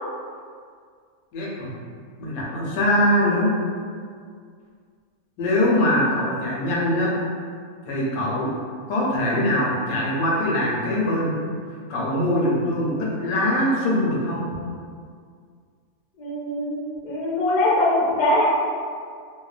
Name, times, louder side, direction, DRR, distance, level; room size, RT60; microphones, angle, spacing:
voice 1, 1.3-1.7 2.2-3.5 5.4-7.1 7.9-8.5 8.9-11.3 11.9-14.4, left 1 dB, 75° left, -5 dB, 1.0 m, -22 dB
voice 2, 16.2-16.8 17.0-18.4, left 1 dB, 55° left, -7 dB, 0.5 m, -21 dB
2.7 x 2.1 x 2.4 m, 2.1 s
omnidirectional pair, 1.6 m